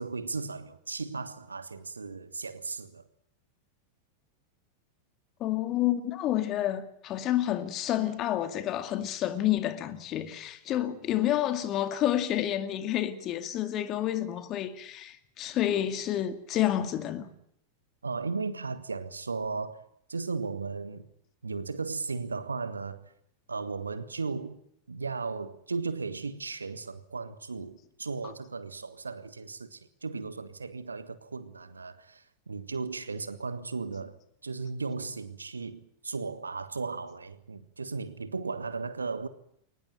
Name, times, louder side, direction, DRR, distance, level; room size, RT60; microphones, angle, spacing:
voice 1, 0.0-3.0 18.0-19.8 20.1-21.1 21.4-23.0 23.5-24.6 24.9-34.2 34.4-39.3, right 4 dB, 75° right, 1.5 m, -36 dB
voice 2, 5.4-17.3, left 12 dB, 35° left, 2.3 m, -29 dB
22.5 x 19.5 x 9.1 m
figure-of-eight pair, 90°, 0 cm